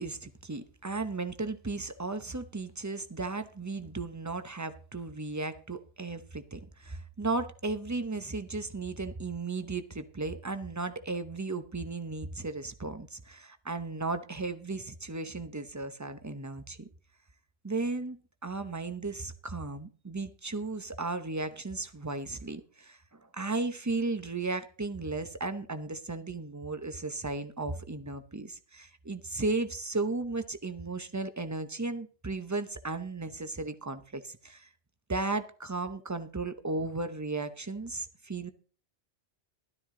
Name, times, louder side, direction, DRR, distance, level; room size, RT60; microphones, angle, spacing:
voice 1, 0.0-16.9 17.6-34.7 35.1-38.5, right 3 dB, 20° right, 0.7 m, -35 dB
13.0 x 12.0 x 3.7 m
omnidirectional pair, 1.1 m